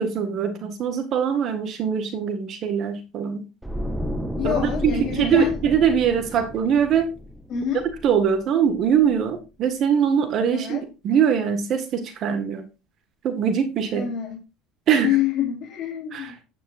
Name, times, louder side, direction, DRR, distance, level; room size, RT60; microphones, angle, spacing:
voice 1, 0.0-3.4 4.4-7.1 8.0-12.7 13.2-14.1 14.9-15.2 16.1-16.3, right 7 dB, 50° right, 9 dB, 1.5 m, -22 dB
sound 1, 3.6-8.7 9.0-9.2, equal, 5° right, 0.9 m, -32 dB
voice 2, 4.4-5.6 7.5-7.8 10.5-10.8 13.9-14.4 15.0-16.4, left 9 dB, 45° left, -2 dB, 3.7 m, -26 dB
9.8 x 8.8 x 2.5 m, 0.29 s
supercardioid pair, 100°, 0 cm